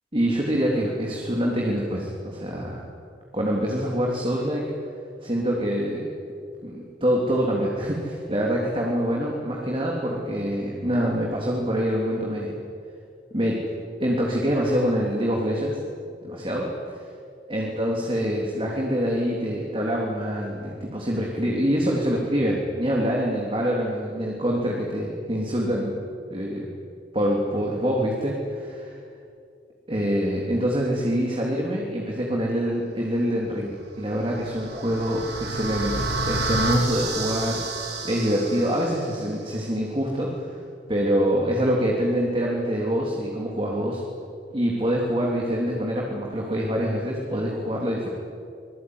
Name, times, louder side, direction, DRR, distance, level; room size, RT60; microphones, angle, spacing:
voice 1, 0.1-2.8 3.3-4.7 5.2-6.1 6.6-12.5 13.3-13.6 14.0-15.8 16.2-16.7 17.5-26.0 26.3-26.7 27.1-29.0 29.9-37.6 38.0-40.6 40.9-44.0 44.5-48.1, equal, 30° right, -2 dB, 3.5 m, -25 dB
sound 1, 34.1-39.2, right 2 dB, 75° right, 6.9 m, -29 dB
26.5 x 21.5 x 9.8 m, 2.4 s
head